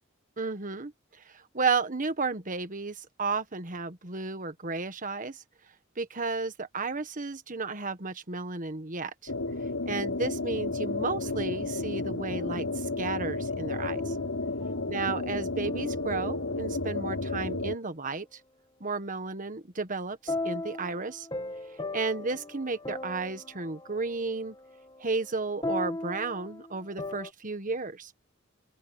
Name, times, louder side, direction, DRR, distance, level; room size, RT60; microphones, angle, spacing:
voice 1, 0.4-0.9 1.2-5.4 6.0-9.3 9.9-14.2 14.9-18.4 18.8-21.3 21.9-24.5 25.0-28.1, right 4 dB, 40° right, 1.5 m, -33 dB
sound 1, 9.3-17.7, left 2 dB, 85° left, 4.5 m, -32 dB
sound 2, 11.6-12.9 13.9-17.2 20.3-27.3, left 2 dB, 20° left, 1.5 m, -39 dB
open air
head